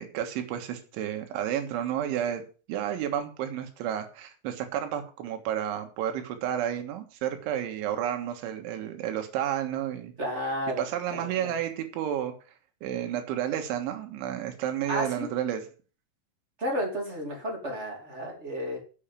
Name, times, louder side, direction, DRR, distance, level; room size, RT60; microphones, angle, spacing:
voice 1, 0.0-2.4 2.7-10.1 10.8-12.3 12.8-15.6, right 10 dB, 80° right, 6 dB, 3.8 m, -31 dB
voice 2, 10.2-10.8 11.1-11.5 14.9-15.3 16.6-18.8, equal, 25° right, 1 dB, 1.5 m, -32 dB
8.2 x 7.0 x 7.4 m, 0.37 s
omnidirectional pair, 5.5 m